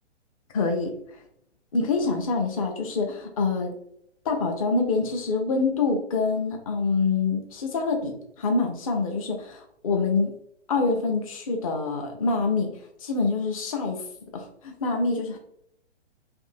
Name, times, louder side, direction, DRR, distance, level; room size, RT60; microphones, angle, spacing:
voice 1, 0.5-0.9 1.7-3.7 4.2-10.3 10.7-12.7 13.0-14.0 14.3-15.4, left 4 dB, 30° left, 3 dB, 0.6 m, -26 dB
2.6 x 2.6 x 4.0 m, 0.70 s
figure-of-eight pair, 125°, 34 cm